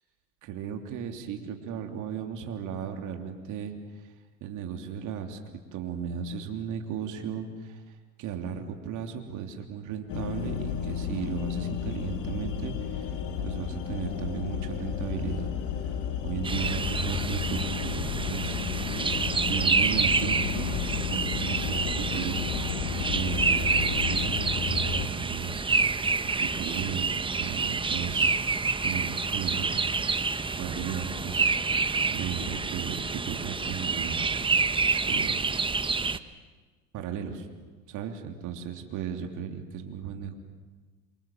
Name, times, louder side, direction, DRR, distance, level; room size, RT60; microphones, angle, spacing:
voice 1, 0.4-4.1 4.4-5.4 5.7-18.6 19.0-20.8 21.1-29.9 30.2-31.7 32.1-34.3 35.0-35.4 36.9-37.5 37.9-40.3, right 7 dB, 55° right, 4 dB, 3.2 m, -36 dB
sound 1, 10.1-25.1, left 8 dB, 55° left, 3.0 m, -32 dB
sound 2, 16.4-36.2, right 4 dB, 15° right, 1.0 m, -28 dB
28.0 x 25.0 x 7.4 m, 1.4 s
supercardioid pair, 90°, 35 cm